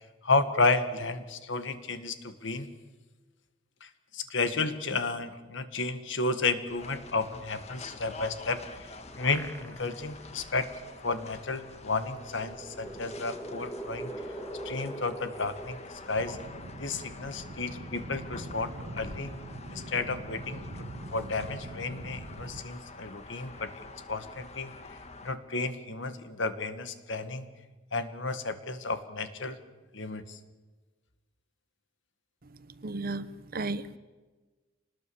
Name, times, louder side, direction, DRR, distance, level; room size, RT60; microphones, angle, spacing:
voice 1, 0.2-2.7 3.8-8.9 9.2-10.7 11.0-14.1 14.6-15.8 16.1-16.4 16.8-19.3 19.7-24.7 25.2-27.5 27.9-29.6 29.9-30.4, left 3 dB, 65° left, 10 dB, 1.6 m, -32 dB
sound 1, 6.7-25.3, left 3 dB, 35° left, 1.5 m, -47 dB
sound 2, 8.8-10.2 10.6-10.7 12.0-16.8, right 1 dB, 10° left, 1.6 m, -43 dB
sound 3, 16.2-22.6, right 1 dB, 70° right, 1.3 m, -43 dB
voice 2, 32.8-34.0, right 2 dB, 50° right, 14 dB, 0.9 m, -34 dB
25.0 x 20.0 x 7.0 m, 1.3 s
head